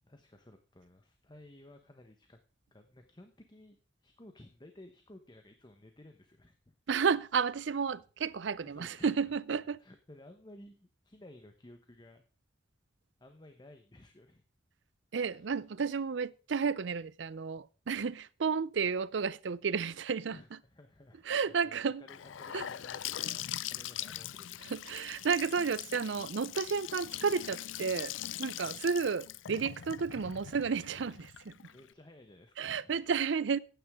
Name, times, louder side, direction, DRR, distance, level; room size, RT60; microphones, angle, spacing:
voice 1, 0.0-2.4 2.7-6.7 7.7-8.0 8.6-9.3 9.8-12.2 13.2-14.4 15.1-15.5 20.3-24.8 28.6-28.8 31.7-33.1, left 1 dB, 25° left, 1.0 m, -56 dB
voice 2, 6.9-9.8 15.1-20.4 21.3-22.0 22.5-22.7 24.6-28.1 28.4-31.5 32.6-33.6, right 5 dB, 70° right, 0.5 m, -32 dB
Gurgling / Sink (filling or washing) / Bathtub (filling or washing), 22.1-31.9, left 12 dB, 90° left, 0.5 m, -41 dB
15.0 x 9.4 x 3.6 m
head